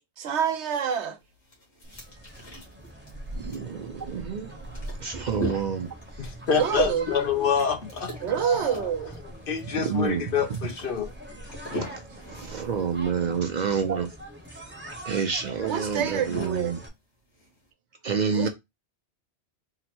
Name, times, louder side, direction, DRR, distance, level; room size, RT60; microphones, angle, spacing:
voice 1, 0.2-1.2 6.5-7.1 8.2-9.2 15.6-16.7 18.3-18.5, right 8 dB, 85° right, 1.0 m, -27 dB
sound 1, 1.2-17.7, equal, 90° left, 1.9 m, -42 dB
sound 2, 1.8-16.9, right 1 dB, 10° right, 0.7 m, -42 dB
voice 2, 3.3-6.3 8.3-8.4 9.6-10.6 11.7-12.0 12.4-14.1 15.1-16.8 18.0-18.5, right 6 dB, 55° right, 0.5 m, -29 dB
voice 3, 6.2-8.9 9.5-11.1 11.7-11.8, left 6 dB, 60° left, 0.8 m, -27 dB
3.8 x 2.0 x 4.3 m
omnidirectional pair, 1.1 m